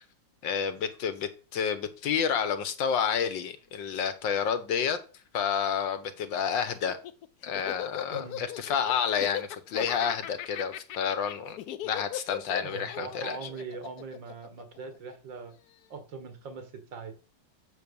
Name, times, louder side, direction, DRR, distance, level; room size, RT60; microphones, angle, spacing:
voice 1, 0.4-5.0 5.3-7.0 7.4-11.6 11.8-13.5, left 7 dB, 80° left, 1.8 m, -30 dB
Laughter, 6.7-15.2, left 12 dB, 65° left, 1.1 m, -38 dB
voice 2, 12.6-15.5 15.9-17.1, right 5 dB, 80° right, 2.5 m, -41 dB
7.7 x 6.4 x 7.1 m
omnidirectional pair, 2.0 m